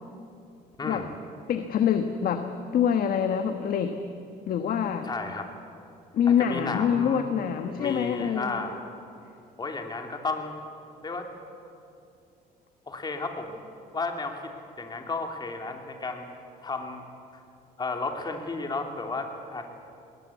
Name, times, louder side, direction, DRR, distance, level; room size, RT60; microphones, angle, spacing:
voice 1, 0.8-1.1 5.0-5.5 6.3-7.3 7.8-8.8 9.6-10.6 11.0-11.3 12.9-13.6 13.9-14.4 14.8-16.3 16.6-17.0 17.8-19.7, left 3 dB, 25° left, 4 dB, 2.9 m, -33 dB
voice 2, 1.5-2.5 2.7-3.9 4.5-5.1 6.1-8.6, left 8 dB, 60° left, 7 dB, 1.3 m, -25 dB
19.5 x 19.5 x 8.5 m, 2.6 s
cardioid pair, 110°, 17 cm